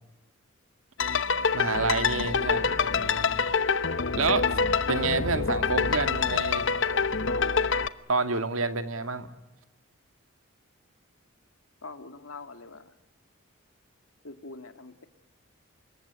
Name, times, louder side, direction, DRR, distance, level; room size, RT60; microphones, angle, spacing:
sound 1, 1.0-7.9, left 5 dB, 60° left, 0.9 m, -26 dB
voice 1, 1.5-3.4 4.2-4.5 4.9-6.7 8.1-9.3, right 3 dB, 80° right, 9 dB, 2.0 m, -29 dB
voice 2, 11.8-12.9 14.2-15.0, left 3 dB, 85° left, 9 dB, 2.1 m, -44 dB
26.0 x 22.5 x 9.9 m, 1.0 s
head